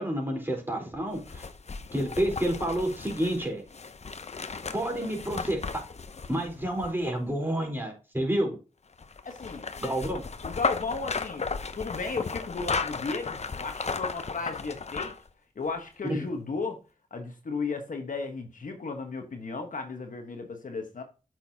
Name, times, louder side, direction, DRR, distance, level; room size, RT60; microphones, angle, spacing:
voice 1, 0.0-1.5 1.9-3.6 4.7-5.6 6.3-8.6 9.8-10.2, right 1 dB, 15° right, 4.1 m, -29 dB
sound 1, 1.1-7.3 9.0-15.3 15.7-15.8, left 4 dB, 50° left, 0.8 m, -35 dB
voice 2, 9.2-9.7 10.4-11.5 11.8-15.1 15.5-16.8 17.1-21.0, left 4 dB, 70° left, 1.3 m, -34 dB
8.3 x 6.3 x 2.9 m
cardioid pair, 40°, 14 cm